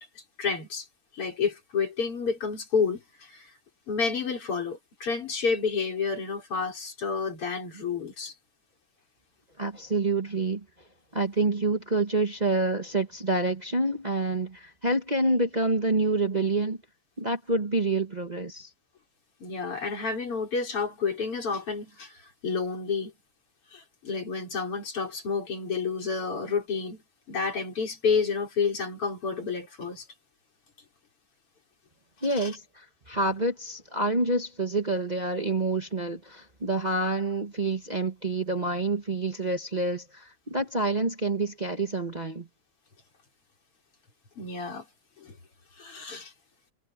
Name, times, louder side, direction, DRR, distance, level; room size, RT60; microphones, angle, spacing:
voice 1, 0.4-0.9 1.1-3.5 3.9-8.3 19.4-22.2 22.4-23.1 23.7-27.0 27.3-30.1 32.4-32.5 44.4-44.9 45.2-45.3 45.8-46.3, left 5 dB, 85° left, 5.4 m, -30 dB
voice 2, 9.6-10.6 11.1-16.8 17.2-18.7 32.2-42.5, right 2 dB, 25° right, 1.3 m, -27 dB
omnidirectional pair, 2.4 m